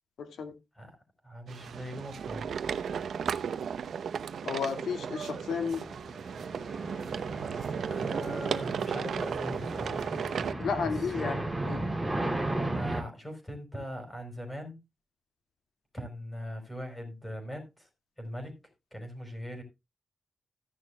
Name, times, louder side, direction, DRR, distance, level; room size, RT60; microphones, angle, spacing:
voice 1, 0.2-0.6 4.4-5.9 10.6-11.4 11.6-11.8, left 6 dB, 90° left, 2.0 m, -32 dB
voice 2, 1.2-2.6 7.9-10.0 10.8-11.4 12.7-14.8 15.9-17.9 18.2-18.5 18.9-19.6, equal, 15° left, 4.5 m, -40 dB
sound 1, 1.5-10.5, right 7 dB, 75° right, 0.7 m, -35 dB
sound 2, 5.2-13.0, right 1 dB, 5° right, 3.0 m, -35 dB
14.5 x 10.5 x 2.2 m
wide cardioid pair, 140°, 0 cm